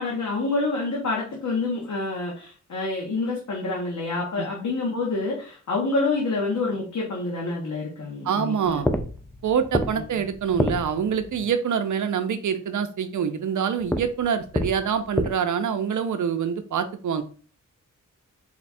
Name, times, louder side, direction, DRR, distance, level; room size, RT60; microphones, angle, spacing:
voice 1, 0.0-8.8, left 3 dB, 65° left, -2 dB, 1.2 m, -27 dB
voice 2, 8.2-8.9 9.4-17.2, right 7 dB, 70° right, 9 dB, 0.6 m, -25 dB
sound 1, 8.7-11.4 13.8-15.3, left 1 dB, 5° left, 0.3 m, -29 dB
4.3 x 2.3 x 4.2 m, 0.41 s
wide cardioid pair, 130°, 31 cm